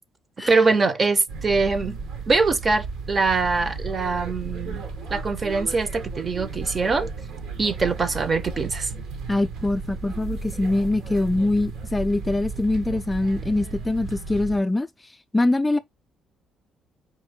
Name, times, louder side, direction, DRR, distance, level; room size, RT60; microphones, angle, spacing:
voice 1, 0.5-2.0 2.3-4.8 5.1-7.1 7.6-8.9, right 4 dB, 35° right, 0.7 m, -23 dB
sound 1, 1.3-14.6, right 4 dB, 75° right, 1.1 m, -34 dB
voice 2, 9.3-14.9 15.3-15.8, left 2 dB, 15° left, 0.3 m, -23 dB
4.3 x 2.6 x 3.5 m
supercardioid pair, 80°, 0 cm